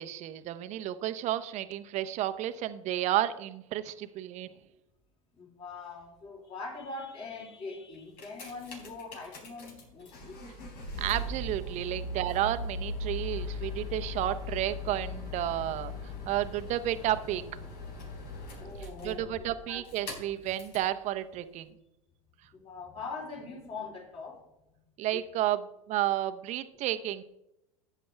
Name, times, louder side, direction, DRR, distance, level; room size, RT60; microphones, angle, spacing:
voice 1, 0.0-4.5 11.0-15.9 16.3-17.4 18.8-21.7 25.0-25.6 25.9-27.2, right 13 dB, 40° right, 11 dB, 0.9 m, -32 dB
voice 2, 5.3-10.4 18.6-19.8 22.5-24.4 25.1-25.2, left 4 dB, 30° left, 0 dB, 3.8 m, -42 dB
sound 1, 7.9-20.9 21.7-21.8, left 2 dB, 70° left, 4.2 m, -39 dB
13.0 x 9.4 x 3.4 m, 0.86 s
hypercardioid pair, 100°, 18 cm